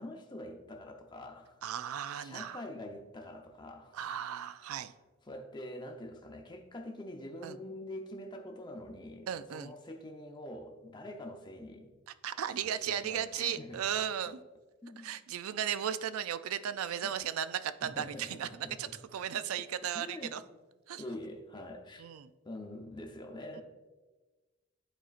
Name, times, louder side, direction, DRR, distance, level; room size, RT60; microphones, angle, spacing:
voice 1, 0.0-1.6 2.1-4.0 5.3-11.9 12.7-13.8 14.2-14.4 14.8-15.1 17.0-17.2 17.8-18.9 19.3-19.4 19.9-20.4 21.0-22.1 22.4-23.6, left 1 dB, 20° left, 3 dB, 0.7 m, -45 dB
voice 2, 1.6-2.6 3.9-4.9 7.4-7.6 9.3-9.7 12.1-14.4 15.0-20.4 20.9-21.0 22.0-22.3, right 9 dB, 85° right, 13 dB, 0.3 m, -36 dB
12.0 x 4.3 x 2.4 m, 1.2 s
head